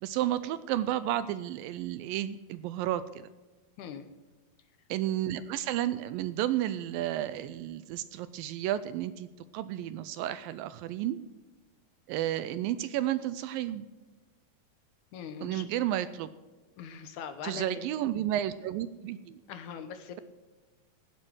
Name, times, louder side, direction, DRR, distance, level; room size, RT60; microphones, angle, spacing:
voice 1, 0.0-3.3 4.9-9.3 9.5-11.2 12.1-13.9 15.4-16.3 17.4-19.4, right 12 dB, 80° right, 14 dB, 2.2 m, -32 dB
voice 2, 15.1-15.7 16.8-17.9 19.5-20.2, left 7 dB, 70° left, 9 dB, 2.0 m, -41 dB
18.0 x 7.7 x 6.2 m, 1.2 s
omnidirectional pair, 4.3 m